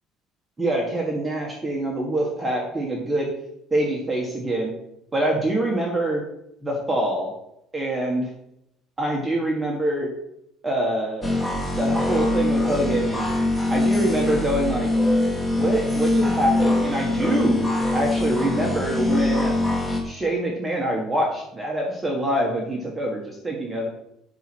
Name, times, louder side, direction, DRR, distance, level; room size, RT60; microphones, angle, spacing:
voice 1, 0.6-3.3 3.7-4.7 5.1-6.2 6.6-7.3 7.7-8.3 9.0-10.1 10.6-11.3 11.7-13.3 13.7-14.9 15.5-17.6 17.9-19.6 20.0-23.9, right 1 dB, 10° right, -1 dB, 1.6 m, -25 dB
sound 1, 11.2-20.0, left 2 dB, 10° left, 1.6 m, -23 dB
9.2 x 5.9 x 6.1 m, 0.80 s
cardioid pair, 165°, 0 cm